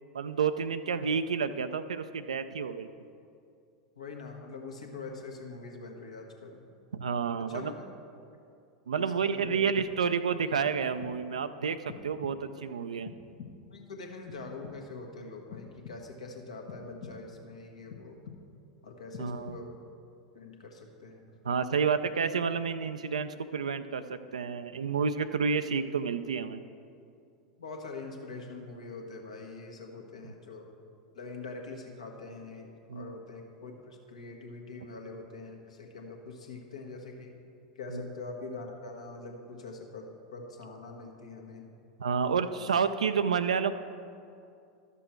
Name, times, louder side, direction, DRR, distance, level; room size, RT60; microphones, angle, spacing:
voice 1, 0.1-2.9 6.9-7.7 8.9-13.1 19.2-19.6 21.4-26.6 32.9-33.1 37.9-38.0 42.0-43.7, right 6 dB, 75° right, 10 dB, 0.4 m, -30 dB
voice 2, 4.0-6.7 7.4-7.7 8.9-9.6 13.7-18.2 18.8-19.7 20.3-21.3 27.6-30.7 31.1-37.3 37.7-41.7 42.6-42.7, left 3 dB, 75° left, 2 dB, 1.3 m, -44 dB
sound 1, 9.4-10.2 10.7-11.4 11.9-12.7 13.0-13.9 14.3-15.1 15.5-16.3 16.7-17.5 17.9-18.7 19.1-19.9, left 6 dB, 55° left, 0.9 m, -48 dB
12.0 x 6.9 x 4.5 m, 2.4 s
figure-of-eight pair, 85°, 4 cm